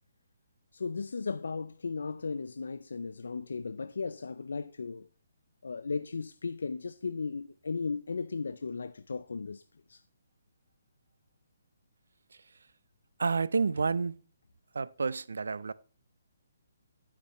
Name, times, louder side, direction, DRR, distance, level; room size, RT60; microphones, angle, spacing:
voice 1, 0.7-5.1 5.6-9.6 9.9-10.0, left 4 dB, 90° left, 0.4 m, -36 dB
voice 2, 13.2-14.2 14.7-15.7, right 4 dB, 90° right, 0.5 m, -29 dB
9.9 x 8.5 x 3.0 m
hypercardioid pair, 175°, 0 cm